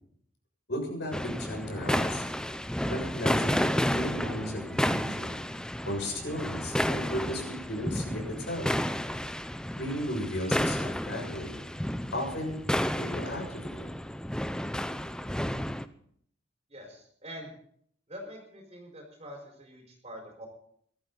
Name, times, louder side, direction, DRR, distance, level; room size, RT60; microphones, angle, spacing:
voice 1, 0.7-2.2 2.8-5.4 5.8-8.8 9.8-11.6 12.1-12.6 13.0-13.9, left 1 dB, 60° left, 1 dB, 7.1 m, -35 dB
sound 1, 1.1-15.9, equal, 5° left, 0.6 m, -31 dB
voice 2, 16.7-17.5 18.1-20.5, equal, 30° right, -1 dB, 4.8 m, -45 dB
22.5 x 13.5 x 4.0 m, 0.64 s
head